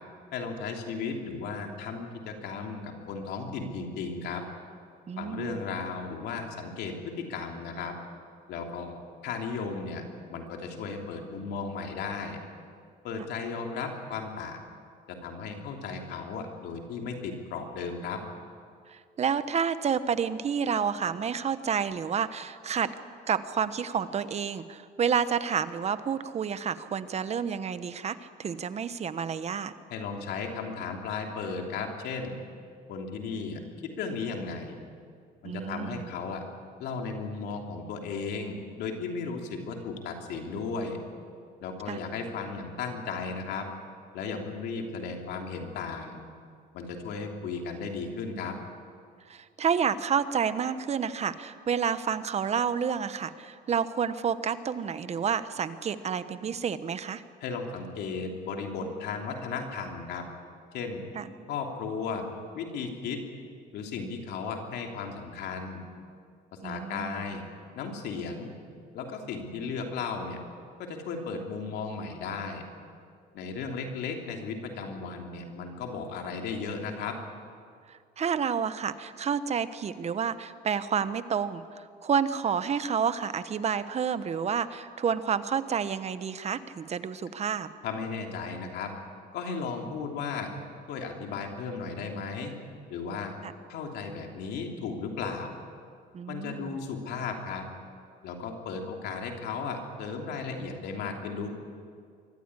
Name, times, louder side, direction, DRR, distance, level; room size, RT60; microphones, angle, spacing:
voice 1, 0.3-4.4 5.2-7.9 8.5-9.0 9.2-10.0 10.3-12.4 13.0-14.6 15.1-18.2 29.9-32.3 32.9-33.6 34.0-34.8 35.4-36.4 36.8-41.0 41.6-43.7 44.1-46.2 46.7-48.5 57.4-60.2 60.7-61.0 61.5-62.2 62.5-63.2 63.7-65.8 66.6-67.4 67.7-68.5 68.9-70.4 70.8-72.6 73.3-77.2 87.8-88.9 89.3-90.5 90.9-92.6 92.9-93.3 93.7-95.5 96.3-97.6 98.2-101.5, left 5 dB, 80° left, 3 dB, 3.2 m, -35 dB
voice 2, 5.1-5.6 13.2-13.3 18.9-22.9 23.3-29.7 35.4-36.1 41.9-42.0 49.3-57.2 61.1-61.3 66.6-67.2 77.9-87.7 93.4-93.5 96.1-96.8, right 7 dB, 40° right, 13 dB, 1.1 m, -30 dB
24.0 x 14.5 x 9.9 m, 2.2 s
cardioid pair, 110°, 17 cm